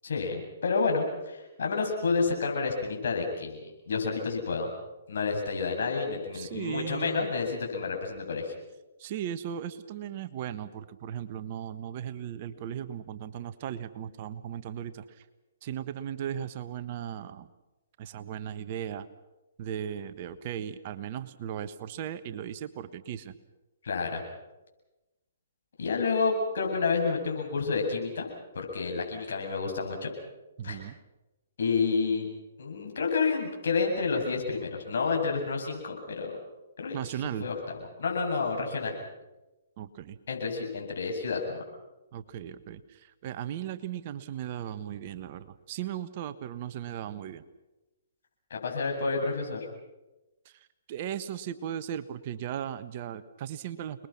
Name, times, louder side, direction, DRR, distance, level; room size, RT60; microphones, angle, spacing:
voice 1, 0.0-3.6 3.9-4.7 5.1-8.5 23.8-24.2 25.8-28.3 28.5-30.1 30.6-30.8 31.6-32.3 32.6-36.4 36.8-37.0 37.4-37.6 38.0-38.9 40.3-41.6 48.5-49.7, left 4 dB, 70° left, 1 dB, 8.0 m, -29 dB
voice 2, 6.3-7.3 9.0-15.2 15.6-17.5 18.0-19.1 19.6-23.4 30.6-30.9 36.9-37.5 39.8-40.2 42.1-47.4 50.4-54.1, right 10 dB, 45° right, 11 dB, 1.4 m, -37 dB
29.5 x 21.0 x 6.1 m, 1.1 s
hypercardioid pair, 130°, 0 cm